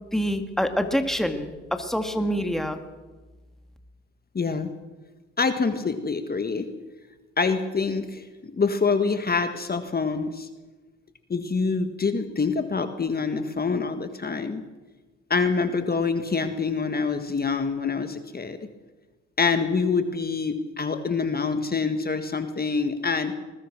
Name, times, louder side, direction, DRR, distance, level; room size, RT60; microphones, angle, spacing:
voice 1, 0.1-2.8, equal, ahead, 6 dB, 2.0 m, -26 dB
voice 2, 4.4-4.7 5.4-6.7 7.4-10.5 11.3-14.6 15.3-18.6 19.4-23.3, left 4 dB, 30° left, 8 dB, 1.6 m, -26 dB
20.5 x 20.5 x 6.1 m, 1.2 s
cardioid pair, 90°, 30 cm